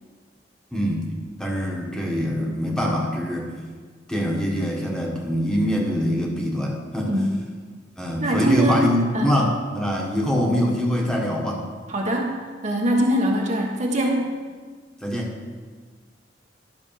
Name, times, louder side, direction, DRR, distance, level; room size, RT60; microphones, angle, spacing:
voice 1, 0.7-1.1 1.4-3.5 4.1-7.1 8.0-11.6 15.0-15.3, equal, 5° left, -2 dB, 1.6 m, -24 dB
voice 2, 8.2-9.4 11.9-12.3 12.6-14.3, right 1 dB, 40° right, 0 dB, 1.3 m, -23 dB
11.5 x 6.1 x 5.8 m, 1.5 s
head